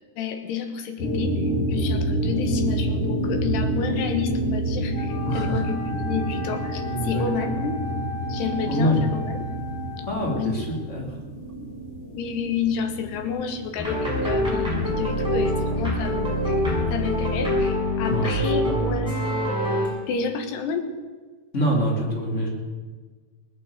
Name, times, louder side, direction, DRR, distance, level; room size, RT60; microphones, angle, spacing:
voice 1, 0.2-7.8 8.3-9.4 10.3-10.6 12.1-16.6 16.9-19.1 20.1-20.9, left 6 dB, 75° left, 6 dB, 3.5 m, -30 dB
sound 1, 1.0-17.4, right 1 dB, 35° left, 3.4 m, -29 dB
Wind instrument woodwind instrument, 4.9-10.8, left 1 dB, 50° left, 1.5 m, -37 dB
voice 2, 5.2-5.6 6.9-7.6 8.7-9.1 10.1-11.1 18.1-18.9 21.5-22.5, equal, 20° left, -1 dB, 2.9 m, -26 dB
sound 2, 13.8-19.9, left 1 dB, ahead, 6.2 m, -24 dB
19.5 x 8.7 x 8.0 m, 1.4 s
omnidirectional pair, 5.0 m